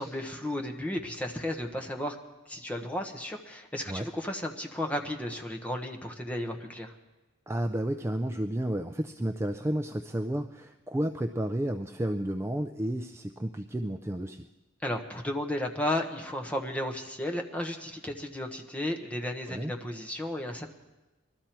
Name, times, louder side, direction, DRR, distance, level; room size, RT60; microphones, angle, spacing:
voice 1, 0.0-2.2 2.5-6.9 14.8-20.7, left 1 dB, 5° left, 2 dB, 1.1 m, -34 dB
voice 2, 7.5-14.5 19.5-19.7, right 1 dB, 10° right, 7 dB, 0.4 m, -32 dB
21.0 x 13.0 x 4.5 m, 1.1 s
head